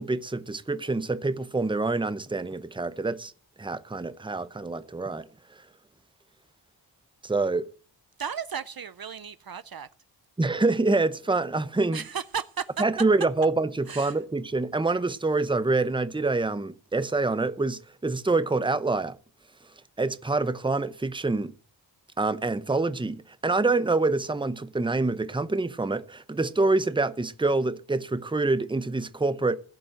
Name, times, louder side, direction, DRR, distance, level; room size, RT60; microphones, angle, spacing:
voice 1, 0.0-3.3 3.6-5.2 7.2-7.7 10.4-12.0 12.8-19.2 20.0-21.5 22.2-29.6, right 3 dB, 10° right, 0.8 m, -26 dB
voice 2, 8.2-9.9 11.9-12.8 13.9-14.2, right 7 dB, 50° right, 0.6 m, -34 dB
16.0 x 5.4 x 8.6 m
wide cardioid pair, 80°, 47 cm